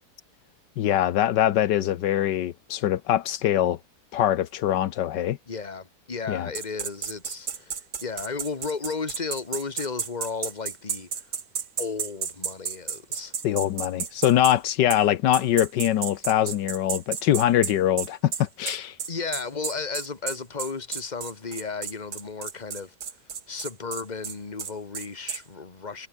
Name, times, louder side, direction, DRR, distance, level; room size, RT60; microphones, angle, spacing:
voice 1, 0.8-3.8 4.1-5.4 6.3-6.5 13.4-19.0, left 12 dB, 80° left, 1.5 m, -23 dB
voice 2, 5.5-11.3 11.8-13.3 19.1-22.9 23.5-26.1, left 4 dB, 25° left, 1.9 m, -34 dB
sound 1, 6.5-14.6 14.9-15.0 15.3-25.4, right 7 dB, 60° right, 2.1 m, -32 dB
omnidirectional pair, 1.9 m